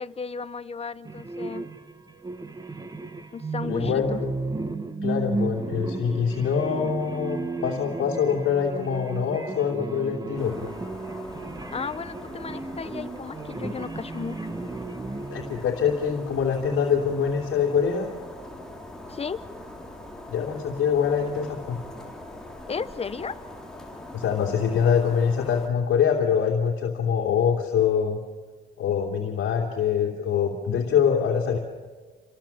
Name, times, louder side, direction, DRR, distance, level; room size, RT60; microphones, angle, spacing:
voice 1, 0.0-1.7 3.3-4.2 11.7-14.5 19.1-19.4 22.7-23.4, left 5 dB, 30° left, 13 dB, 1.1 m, -34 dB
sound 1, 1.1-15.6, right 3 dB, 20° right, 1.8 m, -34 dB
voice 2, 3.7-4.3 5.0-10.7 15.3-18.1 20.3-21.8 24.1-28.2 28.8-31.6, left 7 dB, 75° left, 0 dB, 3.1 m, -24 dB
sound 2, 10.4-25.7, left 1 dB, 5° left, 4.4 m, -42 dB
29.0 x 26.0 x 7.4 m, 1.4 s
cardioid pair, 120°, 21 cm